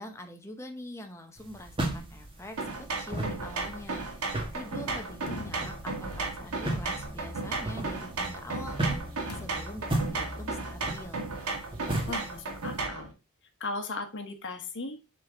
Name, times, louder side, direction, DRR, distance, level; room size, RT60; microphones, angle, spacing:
voice 1, 0.0-2.6 3.0-11.3, left 1 dB, 10° left, 4 dB, 0.8 m, -44 dB
sound 1, 1.4-12.8, right 1 dB, 25° right, 1.4 m, -36 dB
sound 2, 2.6-13.1, right 3 dB, 80° right, 1.7 m, -35 dB
sound 3, 5.3-6.7 9.3-9.9, left 2 dB, 75° left, 0.9 m, -44 dB
voice 2, 12.1-13.1 13.6-15.0, left 3 dB, 55° left, 5 dB, 1.2 m, -37 dB
7.1 x 3.8 x 3.8 m, 0.28 s
head